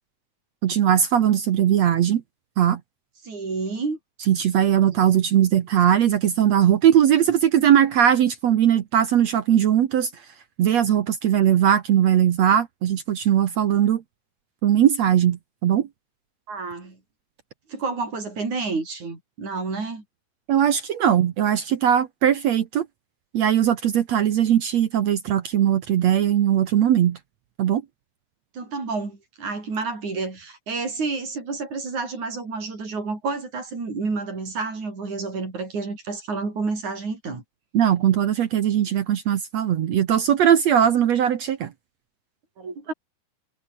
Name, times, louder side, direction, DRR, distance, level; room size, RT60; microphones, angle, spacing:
voice 1, 0.6-2.2 2.6-2.8 4.3-10.1 10.6-14.0 14.6-15.9 20.5-22.9 23.3-27.2 27.6-27.8 37.7-41.7, right 10 dB, 70° right, 1.6 m, -19 dB
voice 2, 3.2-4.0 16.5-17.0 17.7-20.0 28.5-37.4 42.6-42.9, right 4 dB, 45° right, 7.7 m, -30 dB
omnidirectional pair, 4.8 m